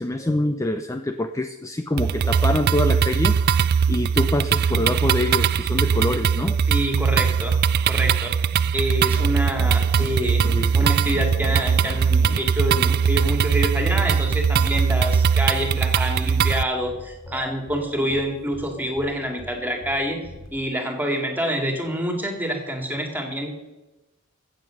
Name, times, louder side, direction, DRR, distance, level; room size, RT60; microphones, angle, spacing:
voice 1, 0.0-3.3 3.6-6.6 8.6-8.7 10.0-10.9 17.3-17.6 18.8-18.9, left 1 dB, 15° left, 8 dB, 0.5 m, -26 dB
sound 1, 2.0-16.6, right 6 dB, 50° right, 0.3 m, -20 dB
voice 2, 6.7-7.6 7.9-8.3 8.7-10.4 10.7-20.2 20.5-23.5, equal, 10° right, 3 dB, 2.2 m, -27 dB
sound 2, 9.0-14.4, left 1 dB, 55° left, 1.8 m, -38 dB
sound 3, 16.8-17.4 17.7-17.8 18.1-18.2 18.5-18.7 19.0-19.1 19.4-19.5 19.8-19.9 20.2-20.5, left 1 dB, 70° left, 2.9 m, -41 dB
15.0 x 7.8 x 6.4 m, 1.0 s
head